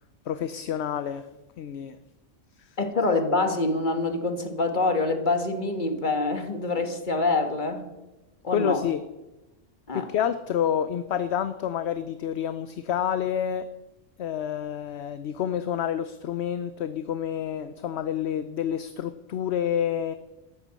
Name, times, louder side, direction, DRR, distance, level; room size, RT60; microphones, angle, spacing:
voice 1, 0.3-1.3 1.6-2.0 2.6-2.7 8.5-9.0 9.9-13.7 14.2-20.1, left 9 dB, 60° left, 12 dB, 0.9 m, -28 dB
voice 2, 2.8-7.8 8.4-8.8 9.9-10.1, left 3 dB, 40° left, 7 dB, 1.8 m, -25 dB
13.5 x 10.5 x 7.5 m, 1.0 s
omnidirectional pair, 1.3 m